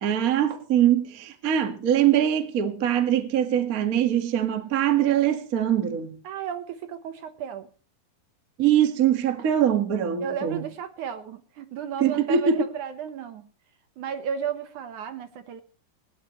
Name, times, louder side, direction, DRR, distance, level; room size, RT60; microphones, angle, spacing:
voice 1, 0.0-6.2 8.6-10.6 12.0-12.6, right 9 dB, 40° right, 1.3 m, -22 dB
voice 2, 6.2-7.7 10.2-13.5 14.0-15.6, right 8 dB, 65° right, 2.3 m, -33 dB
20.0 x 17.5 x 3.1 m
omnidirectional pair, 4.3 m